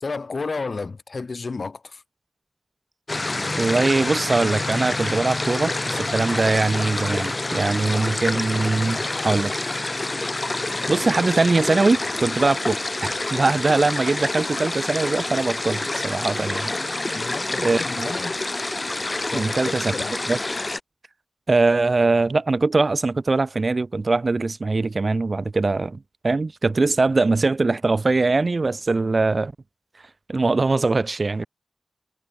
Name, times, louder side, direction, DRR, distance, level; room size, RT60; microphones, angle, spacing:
voice 1, 0.0-2.0 17.1-18.4 19.3-20.2, left 4 dB, 55° left, 0.8 m, -32 dB
sound 1, 3.1-20.8, left 2 dB, 30° left, 0.5 m, -27 dB
voice 2, 3.6-9.5 10.9-12.8 13.0-16.7 17.6-18.1 19.3-19.9 20.3-20.4 21.5-29.5 30.3-31.5, right 3 dB, 45° right, 0.8 m, -22 dB
wide cardioid pair, 110°, 0 cm